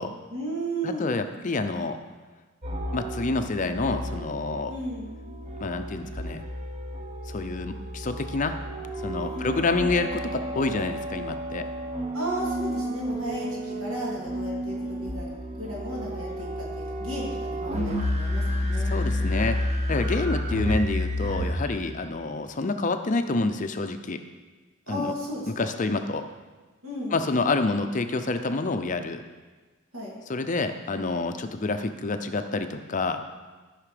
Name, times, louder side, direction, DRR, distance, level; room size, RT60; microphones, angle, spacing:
voice 1, 0.3-1.1 4.7-5.1 9.3-9.6 12.1-18.9 24.9-25.7 26.8-27.2 29.9-30.2, right 1 dB, 70° right, -4 dB, 3.0 m, -34 dB
voice 2, 0.8-2.0 2.9-4.7 5.6-6.4 7.3-8.6 9.0-11.7 18.9-24.2 24.9-25.1 25.6-26.2 27.1-29.2 30.3-33.2, left 3 dB, 35° left, 8 dB, 0.5 m, -28 dB
sound 1, 2.6-22.0, equal, 30° right, 1.0 m, -31 dB
13.0 x 5.8 x 5.1 m, 1.3 s
head